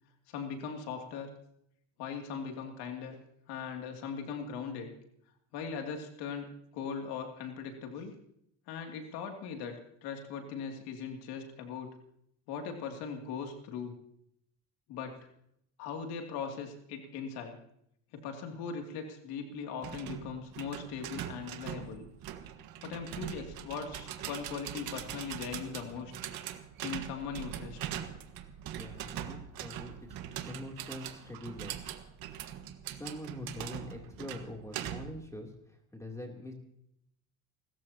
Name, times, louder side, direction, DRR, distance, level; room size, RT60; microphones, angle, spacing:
voice 1, 0.3-1.3 2.0-3.2 3.5-4.9 5.5-8.2 8.7-11.9 12.5-14.0 14.9-15.1 15.8-17.6 18.1-22.1 22.8-26.1 26.8-27.9, left 6 dB, 70° left, 3 dB, 2.8 m, -39 dB
sound 1, 19.8-35.3, right 10 dB, 60° right, 1.7 m, -42 dB
voice 2, 28.7-31.8 32.9-36.5, left 1 dB, 10° left, 1 dB, 3.1 m, -44 dB
29.5 x 14.0 x 2.9 m, 0.73 s
supercardioid pair, 85°, 39 cm